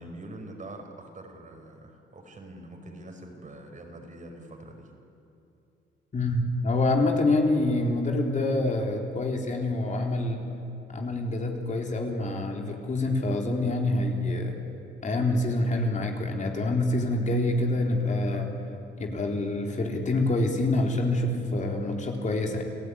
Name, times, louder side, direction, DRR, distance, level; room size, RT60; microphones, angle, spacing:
voice 1, 0.0-4.9, right 1 dB, 40° right, 4 dB, 5.0 m, -44 dB
voice 2, 6.1-10.4 10.9-14.6 15.0-18.5 19.0-22.6, left 2 dB, 40° left, 1 dB, 3.7 m, -26 dB
29.5 x 17.0 x 10.0 m, 2.7 s
cardioid pair, 90°, 20 cm